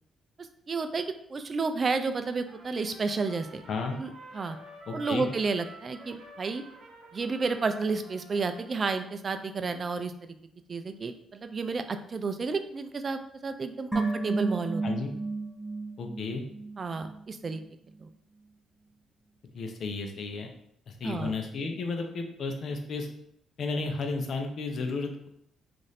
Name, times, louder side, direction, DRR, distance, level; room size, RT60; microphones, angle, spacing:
voice 1, 0.7-3.6 3.9-4.6 4.9-6.6 7.1-10.4 10.7-14.8 16.8-17.6 18.0-18.1 21.0-21.3, right 4 dB, 40° right, 9 dB, 0.3 m, -31 dB
Trumpet, 2.4-9.2, right 2 dB, 60° right, 0.8 m, -50 dB
voice 2, 4.9-5.3 14.8-15.1 16.0-16.4 19.5-20.5 21.0-23.1 23.6-25.3, left 3 dB, 60° left, 4 dB, 0.6 m, -33 dB
sound 1, 13.9-17.2 17.5-17.6, right 3 dB, ahead, 0.8 m, -32 dB
3.1 x 2.5 x 4.1 m, 0.72 s
cardioid pair, 90°, 0 cm